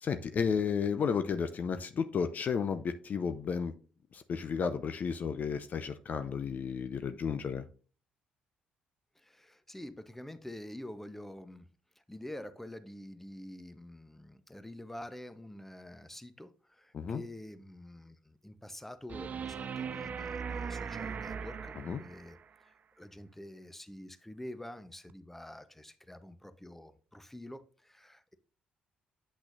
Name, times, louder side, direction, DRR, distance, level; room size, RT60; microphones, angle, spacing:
voice 1, 0.0-3.7 4.1-7.6 16.9-17.2 21.9-22.0, left 6 dB, 50° left, 0.6 m, -32 dB
voice 2, 9.2-11.7 12.1-22.4 22.6-28.3, left 1 dB, 5° left, 0.9 m, -47 dB
sound 1, 19.1-22.4 25.1-25.2, right 6 dB, 45° right, 0.4 m, -39 dB
8.6 x 6.0 x 2.6 m
hypercardioid pair, 45°, 4 cm